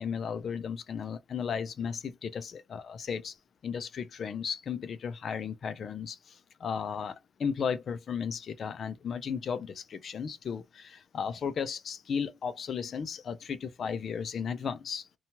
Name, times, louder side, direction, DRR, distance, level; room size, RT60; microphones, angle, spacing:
voice 1, 0.0-3.4 3.6-15.1, left 6 dB, 55° left, 0.4 m, -35 dB
2.8 x 2.3 x 2.7 m
cardioid pair, 100°, 0 cm